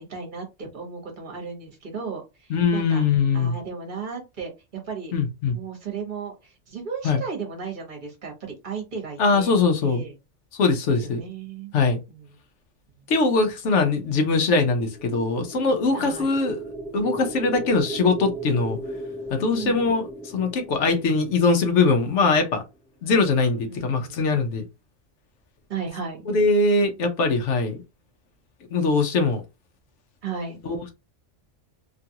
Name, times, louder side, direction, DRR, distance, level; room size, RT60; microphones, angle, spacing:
voice 1, 0.0-3.0 3.3-5.1 5.5-10.1 11.0-11.7 12.1-12.3 15.9-16.3 19.5-19.8 23.7-24.3 25.7-26.2 30.2-30.6, right 5 dB, 45° right, 1.2 m, -35 dB
voice 2, 2.5-3.6 5.1-5.6 7.0-7.2 9.2-10.0 10.6-11.2 11.7-12.0 13.1-16.6 16.9-18.8 19.3-20.1 20.3-22.6 23.0-24.6 26.3-27.8 28.7-29.4 30.6-30.9, left 4 dB, 75° left, 1.0 m, -22 dB
sound 1, 14.7-22.8, right 1 dB, 10° left, 0.6 m, -36 dB
3.0 x 2.4 x 2.7 m
omnidirectional pair, 1.2 m